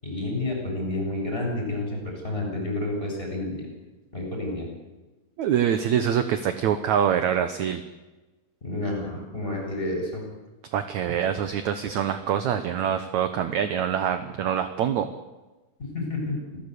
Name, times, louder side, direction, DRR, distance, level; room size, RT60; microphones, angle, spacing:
voice 1, 0.0-3.7 4.1-4.7 8.6-10.2 15.8-16.4, left 2 dB, 15° left, 0 dB, 8.1 m, -30 dB
voice 2, 5.4-7.8 10.7-15.1, right 9 dB, 70° right, 9 dB, 1.9 m, -25 dB
28.0 x 17.5 x 8.4 m, 1.1 s
omnidirectional pair, 4.5 m